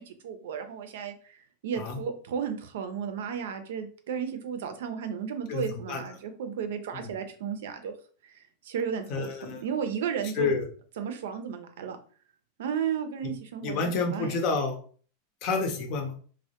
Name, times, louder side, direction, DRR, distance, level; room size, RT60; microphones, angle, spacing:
voice 1, 0.0-7.9 8.2-8.4 8.6-10.5 11.0-12.0 12.6-14.4, right 7 dB, 75° right, 8 dB, 0.4 m, -34 dB
voice 2, 5.5-6.0 6.9-7.1 9.1-9.6 10.4-10.6 13.6-14.8 15.4-16.1, left 4 dB, 50° left, 4 dB, 0.6 m, -29 dB
2.1 x 2.1 x 2.8 m, 0.43 s
hypercardioid pair, 115°, 0 cm